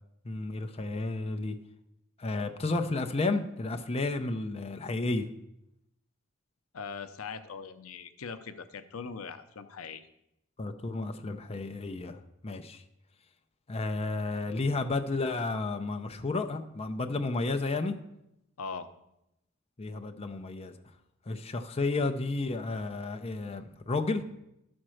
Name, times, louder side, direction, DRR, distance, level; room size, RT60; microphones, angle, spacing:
voice 1, 0.2-1.6 2.2-5.3 10.6-12.8 13.7-18.0 19.8-20.7 21.3-24.2, left 3 dB, 30° left, 6 dB, 0.6 m, -32 dB
voice 2, 6.7-10.1 18.6-18.9, left 5 dB, 85° left, 11 dB, 0.6 m, -41 dB
11.5 x 4.4 x 6.3 m, 0.84 s
head